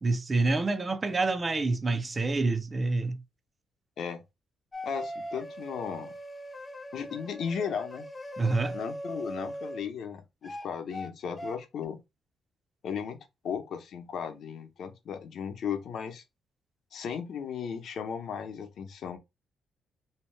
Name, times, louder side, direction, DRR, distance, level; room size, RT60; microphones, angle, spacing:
voice 1, 0.0-3.2 8.4-8.8, right 3 dB, 25° right, 0.5 m, -27 dB
sound 1, 4.7-9.8 10.4-11.1 11.4-11.6, equal, 25° left, 0.5 m, -40 dB
voice 2, 4.8-6.1 6.9-8.1 8.7-12.0 12.8-13.2 13.4-16.2 16.9-19.2, left 7 dB, 65° left, 0.7 m, -36 dB
2.8 x 2.1 x 3.2 m
cardioid pair, 90°, 0 cm